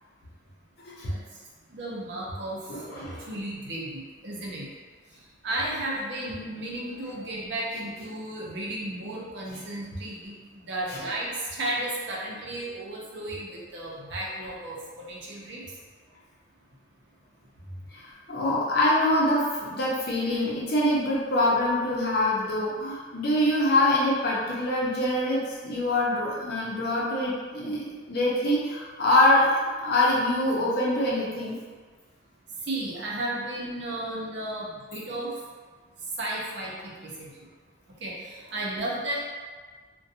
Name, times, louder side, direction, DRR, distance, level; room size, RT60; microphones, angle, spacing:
voice 1, 1.7-2.6 2.9-4.7 5.4-15.6 32.7-35.3 36.2-37.3 38.0-39.2, right 1 dB, 70° right, -4 dB, 0.6 m, -34 dB
voice 2, 2.7-3.2 9.5-9.6 10.9-11.1 17.9-18.0 18.3-31.6, left 1 dB, 60° left, -5 dB, 0.6 m, -25 dB
2.5 x 2.2 x 2.6 m, 1.4 s
head